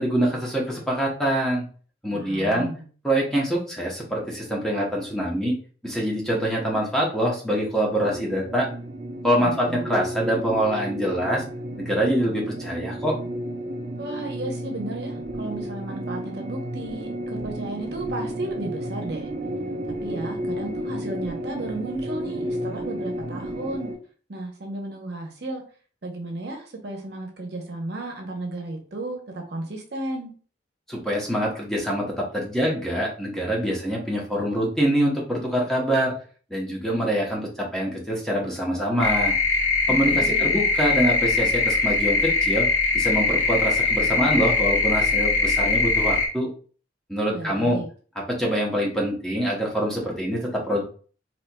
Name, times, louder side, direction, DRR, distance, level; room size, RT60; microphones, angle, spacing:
voice 1, 0.0-1.6 2.0-2.7 3.0-5.6 5.8-8.7 9.2-11.4 11.8-13.1 30.9-36.1 36.5-39.3 39.9-42.7 42.9-46.5 47.1-47.8 48.3-50.8, equal, 5° left, -3 dB, 0.8 m, -25 dB
voice 2, 2.1-2.9 9.4-9.9 14.0-19.3 20.0-23.9 24.3-25.6 26.0-30.3 39.9-40.6 47.3-47.9, right 2 dB, 60° right, 2 dB, 0.8 m, -34 dB
sound 1, 8.0-24.0, right 1 dB, 35° right, 0.4 m, -32 dB
sound 2, 39.0-46.3, left 4 dB, 75° left, 1.2 m, -21 dB
4.1 x 2.9 x 2.2 m, 0.40 s
head